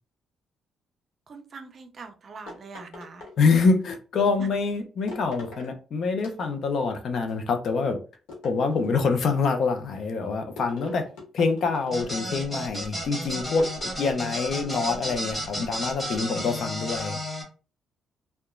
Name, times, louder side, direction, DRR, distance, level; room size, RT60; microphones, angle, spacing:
voice 1, 1.3-3.3 4.4-4.5, right 4 dB, 45° right, 0.5 m, -42 dB
sound 1, 2.5-3.8 5.1-5.7 6.2-6.9 8.3-9.2 10.6-12.3 13.6-14.9, left 3 dB, 85° left, 1.1 m, -44 dB
voice 2, 3.4-8.0 8.4-11.0 11.3-13.7 14.0-17.2, left 4 dB, 60° left, 0.5 m, -25 dB
sound 2, 11.9-17.4, left 1 dB, 15° left, 1.3 m, -32 dB
2.8 x 2.2 x 2.4 m
cardioid pair, 90°, 0 cm